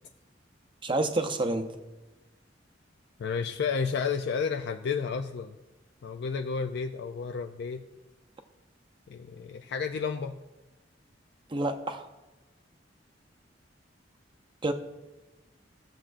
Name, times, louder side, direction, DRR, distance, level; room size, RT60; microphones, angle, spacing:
voice 1, 0.8-1.7 11.5-12.1 14.6-14.7, right 2 dB, 25° right, 6 dB, 0.6 m, -28 dB
voice 2, 3.2-5.6 6.0-7.8 9.1-10.4, left 5 dB, 60° left, 6 dB, 0.3 m, -31 dB
14.5 x 7.2 x 2.5 m, 1.1 s
head